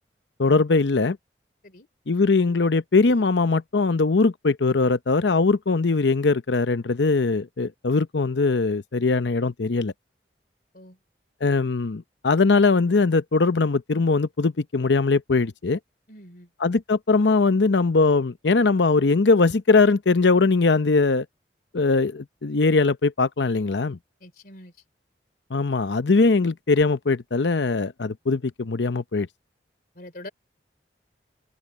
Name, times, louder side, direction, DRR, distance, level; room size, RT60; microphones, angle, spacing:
voice 1, 0.4-1.2 2.1-9.9 11.4-15.8 16.6-21.3 21.7-24.0 25.5-29.3, left 3 dB, 90° left, 0.8 m, -21 dB
voice 2, 16.1-16.5 24.2-24.7 29.9-30.3, left 1 dB, 55° left, 3.2 m, -43 dB
head